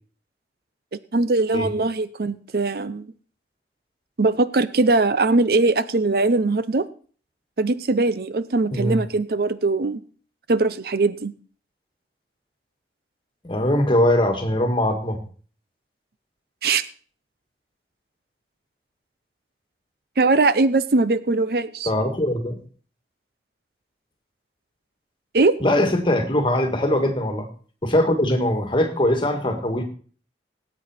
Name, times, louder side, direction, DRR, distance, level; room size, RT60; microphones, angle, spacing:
voice 1, 1.1-3.1 4.2-6.8 7.6-10.0 10.5-11.3 16.6-16.8 20.2-21.9 25.3-25.5, right 3 dB, 55° right, 14 dB, 0.6 m, -21 dB
voice 2, 8.7-9.1 13.4-15.2 21.8-22.6 25.6-27.5 27.8-29.8, left 1 dB, 30° left, 6 dB, 1.7 m, -21 dB
18.0 x 8.5 x 4.4 m, 0.42 s
head